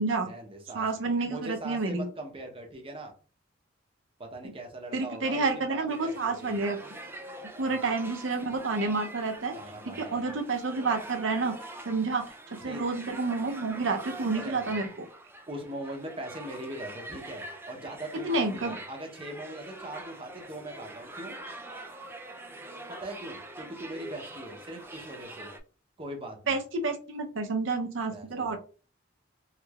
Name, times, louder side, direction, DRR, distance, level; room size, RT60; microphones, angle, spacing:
voice 1, 0.1-0.9 1.3-3.1 4.2-6.5 7.6-7.8 9.5-10.2 12.6-12.9 14.3-14.8 15.5-21.3 23.0-25.5 26.0-26.6 28.0-28.6, right 1 dB, 30° right, 3 dB, 0.8 m, -41 dB
voice 2, 0.7-2.1 4.9-6.8 7.6-9.6 9.9-11.6 11.9-14.9 18.2-18.8 26.5-28.6, right 3 dB, 75° right, 4 dB, 0.7 m, -29 dB
sound 1, 5.9-25.6, right 1 dB, 10° right, 0.4 m, -44 dB
3.3 x 3.3 x 2.3 m, 0.37 s
head